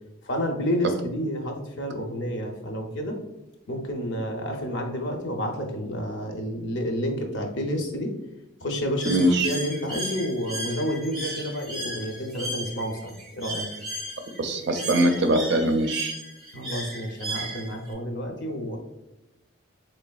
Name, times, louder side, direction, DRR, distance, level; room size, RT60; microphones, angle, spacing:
voice 1, 0.2-3.2 3.7-8.1 8.6-9.2 9.4-13.7 16.5-18.8, equal, 60° left, 3 dB, 0.6 m, -30 dB
Bird, 9.0-17.9, right 1 dB, ahead, 0.6 m, -36 dB
voice 2, 9.1-9.5 14.4-16.1, right 1 dB, 55° right, 5 dB, 0.5 m, -22 dB
4.0 x 3.2 x 2.3 m, 0.92 s
head